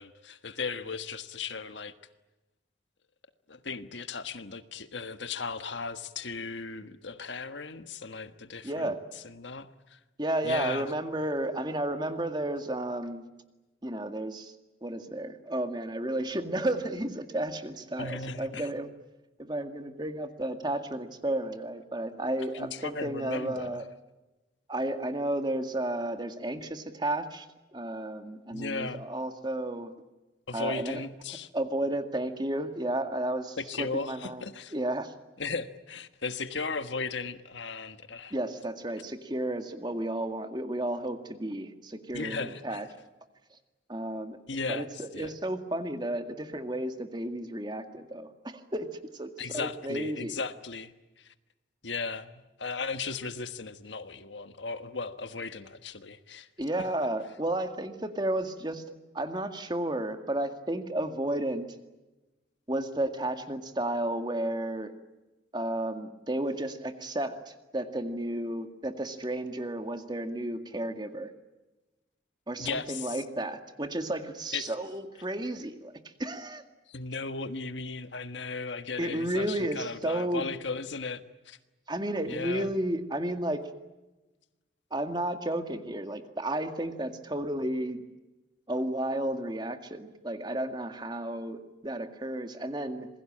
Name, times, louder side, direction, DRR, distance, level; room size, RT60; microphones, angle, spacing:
voice 1, 0.0-1.9 3.5-8.9 9.2-10.0 10.4-10.9 18.0-18.7 22.5-23.8 28.5-29.0 30.5-31.5 33.6-34.7 35.4-38.3 42.1-42.8 44.5-44.9 45.1-45.3 49.4-50.9 51.2-51.3 51.8-56.5 72.6-73.2 74.5-74.7 76.9-81.6 82.3-82.7, left 4 dB, 75° left, 10 dB, 1.5 m, -36 dB
voice 2, 8.6-9.0 10.2-13.3 13.8-14.6 14.8-18.9 19.4-23.8 24.7-27.5 27.7-29.9 30.5-31.0 31.5-34.5 34.7-35.1 38.3-42.9 43.5-43.6 43.9-44.4 44.7-50.4 56.6-58.8 59.1-61.8 62.7-64.9 65.5-71.3 72.5-76.6 79.0-80.5 81.9-83.7 84.9-88.0 88.7-93.1, right 1 dB, 25° right, 7 dB, 2.0 m, -32 dB
27.5 x 21.5 x 8.8 m, 1.1 s
head